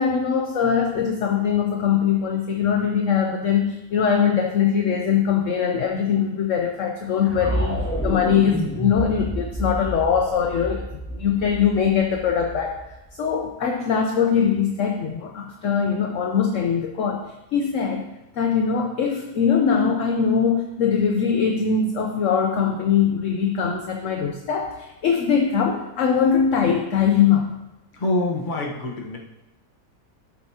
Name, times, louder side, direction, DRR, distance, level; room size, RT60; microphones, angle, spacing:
voice 1, 0.0-12.8 13.2-27.6, left 7 dB, 60° left, 3 dB, 1.0 m, -22 dB
sound 1, 7.3-13.3, equal, 15° left, 0.6 m, -30 dB
voice 2, 27.9-29.2, left 2 dB, 35° left, -1 dB, 1.3 m, -25 dB
11.5 x 8.1 x 2.9 m, 0.95 s
omnidirectional pair, 1.6 m